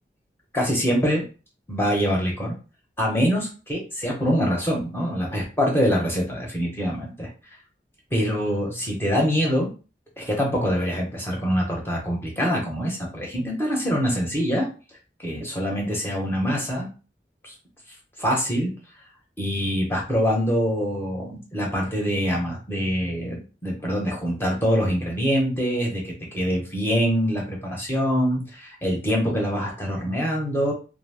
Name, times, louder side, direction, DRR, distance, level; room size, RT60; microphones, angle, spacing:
voice 1, 0.5-1.2 1.7-2.5 3.0-7.3 8.1-9.7 10.2-14.7 15.2-16.9 17.4-17.5 18.2-18.7 19.4-30.7, equal, 15° left, -2 dB, 0.7 m, -24 dB
2.5 x 2.0 x 3.3 m, 0.34 s
head